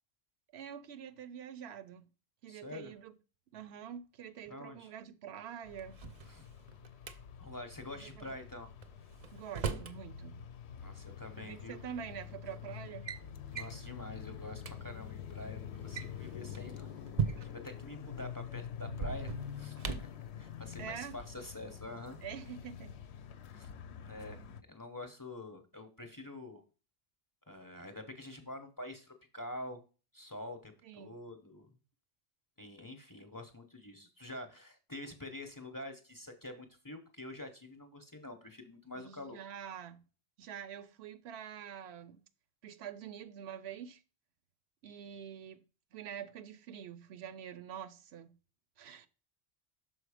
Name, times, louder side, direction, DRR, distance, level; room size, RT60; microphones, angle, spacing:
voice 1, 0.5-2.1 2.4-3.1 3.5-6.0 7.9-8.4 9.3-10.4 11.4-13.1 20.8-21.2 22.2-23.0 30.8-31.1 39.0-40.0 40.4-42.2 42.6-44.0 44.8-45.6 45.9-48.3 48.8-49.1, right 8 dB, 75° right, 0.8 m, -46 dB
voice 2, 2.5-2.9 4.5-4.9 6.3-6.5 7.4-8.7 10.8-11.8 13.5-16.9 17.2-19.3 19.6-22.2 23.5-26.6 27.5-29.8 30.1-31.7 32.6-39.4, left 1 dB, 20° left, 0.8 m, -46 dB
sound 1, 5.6-24.6, left 8 dB, 80° left, 0.9 m, -47 dB
Drawer open or close, 5.8-7.1 8.8-10.0 11.3-11.4 12.2-12.4 12.8-13.2 13.5-13.8 14.3-14.4 14.6-14.7 15.7-17.7 18.9-20.2, right 6 dB, 45° right, 0.5 m, -38 dB
6.4 x 4.4 x 4.9 m
omnidirectional pair, 1.1 m